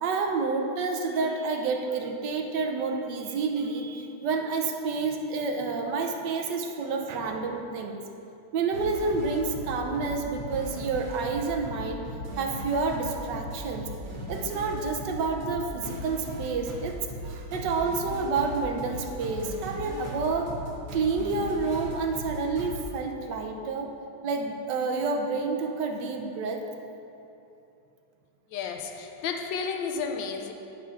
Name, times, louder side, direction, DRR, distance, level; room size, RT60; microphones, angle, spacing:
voice 1, 0.0-8.0 8.5-12.0 12.4-13.9 14.3-20.5 20.9-23.9 24.2-26.6, right 4 dB, 65° right, 1.3 m, -29 dB
sound 1, 8.7-22.8, equal, 90° right, 2.5 m, -38 dB
voice 2, 28.5-30.5, left 5 dB, 70° left, 1.3 m, -32 dB
9.7 x 5.4 x 5.6 m
omnidirectional pair, 2.3 m